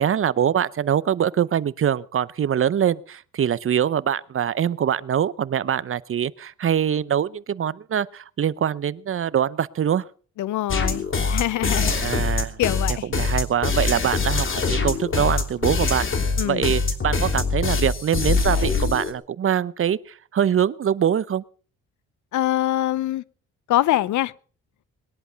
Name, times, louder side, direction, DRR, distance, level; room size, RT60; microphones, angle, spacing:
voice 1, 0.0-10.0 12.0-12.6 13.1-21.4, right 9 dB, 45° right, 0.8 m, -23 dB
voice 2, 10.4-11.9 12.6-13.1 16.4-16.7 22.3-23.2 23.7-24.3, left 14 dB, 75° left, 0.7 m, -24 dB
sound 1, 10.7-19.1, left 4 dB, 40° left, 3.1 m, -23 dB
20.5 x 11.0 x 5.8 m
cardioid pair, 90°, 30 cm